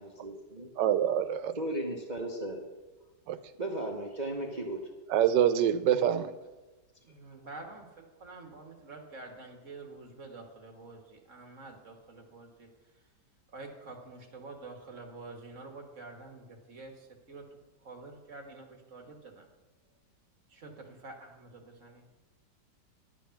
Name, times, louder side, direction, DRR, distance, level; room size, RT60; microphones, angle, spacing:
voice 1, 0.0-0.7 1.6-2.6 3.6-4.9, right 1 dB, 30° right, 0 dB, 1.0 m, -36 dB
voice 2, 0.8-1.5 3.3-3.4 5.1-6.3, right 10 dB, 90° right, 12 dB, 1.3 m, -25 dB
voice 3, 5.9-6.3 7.0-12.7 13.5-19.5 20.5-22.0, right 3 dB, 45° right, 3 dB, 1.7 m, -48 dB
11.5 x 8.4 x 5.8 m, 1.1 s
omnidirectional pair, 1.9 m